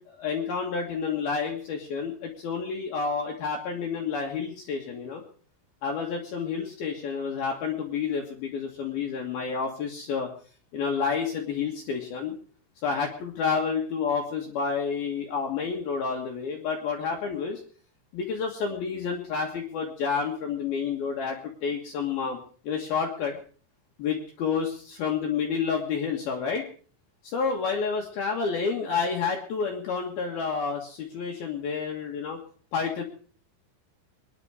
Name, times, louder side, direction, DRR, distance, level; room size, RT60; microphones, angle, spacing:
voice 1, 0.0-5.2 5.8-10.3 10.7-12.4 12.8-17.6 18.1-22.4 22.6-23.4 24.0-26.6 27.2-32.4 32.7-33.0, left 5 dB, 60° left, 0 dB, 3.2 m, -29 dB
23.0 x 10.5 x 4.9 m, 0.43 s
omnidirectional pair, 5.3 m